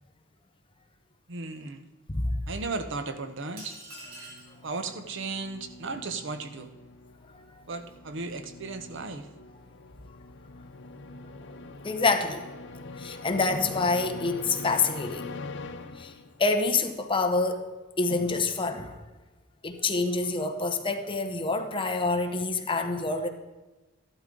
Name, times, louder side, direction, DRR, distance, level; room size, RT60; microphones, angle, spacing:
voice 1, 1.3-1.8 2.5-3.8 4.6-6.7 7.7-9.3, right 3 dB, 60° right, 9 dB, 0.8 m, -35 dB
sound 1, 3.6-4.6, right 1 dB, 80° right, 3.0 m, -44 dB
sound 2, 4.0-16.6, left 3 dB, 60° left, 0.6 m, -44 dB
voice 2, 7.3-7.6 11.8-12.5 13.0-15.3 16.0-16.1 16.4-17.6 18.0-19.0 19.6-23.3, left 3 dB, 25° left, 6 dB, 0.9 m, -27 dB
13.5 x 12.0 x 3.8 m, 1.2 s
head